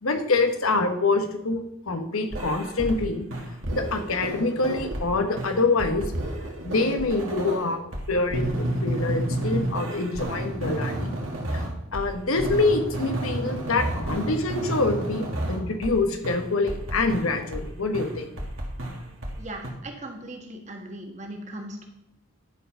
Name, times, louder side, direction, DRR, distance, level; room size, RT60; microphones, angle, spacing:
voice 1, 0.0-3.3 3.7-6.0 6.6-7.8 8.1-11.2 11.5-18.3, left 3 dB, 90° left, 6 dB, 1.2 m, -25 dB
sound 1, 2.3-3.0 3.3-5.1 5.4-12.1 12.4-16.0 16.2-17.7 17.9-19.4 19.6-19.7, right 1 dB, 75° right, 1.9 m, -31 dB
voice 2, 19.4-21.9, right 1 dB, 35° right, 2 dB, 1.5 m, -38 dB
11.0 x 4.8 x 5.6 m, 0.83 s
head